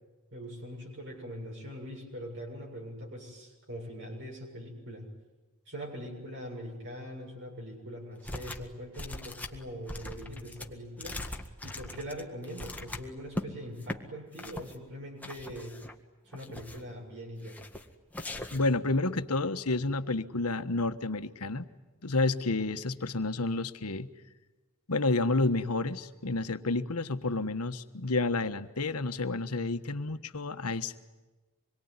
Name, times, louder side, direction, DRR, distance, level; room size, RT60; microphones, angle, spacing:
voice 1, 0.3-5.1 5.7-11.2 11.6-15.8 16.3-17.6, equal, 55° right, -1 dB, 7.1 m, -42 dB
sound 1, 8.2-8.7 8.9-13.5 13.8-14.0 14.4-14.7 15.2-15.9 16.3-16.9 17.4-17.8 18.1-18.8, left 1 dB, 5° left, 1.8 m, -40 dB
voice 2, 18.5-21.7 22.0-24.1 24.9-31.0, left 3 dB, 85° left, 10 dB, 1.4 m, -30 dB
26.5 x 22.5 x 9.7 m, 1.2 s
head